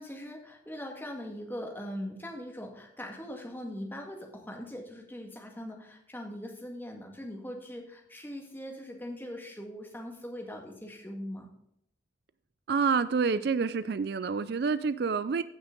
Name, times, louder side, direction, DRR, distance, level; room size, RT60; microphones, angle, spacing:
voice 1, 0.0-11.5, equal, 10° left, 1 dB, 1.9 m, -41 dB
voice 2, 12.7-15.4, right 5 dB, 55° right, 14 dB, 0.4 m, -28 dB
15.5 x 6.1 x 3.8 m, 0.73 s
head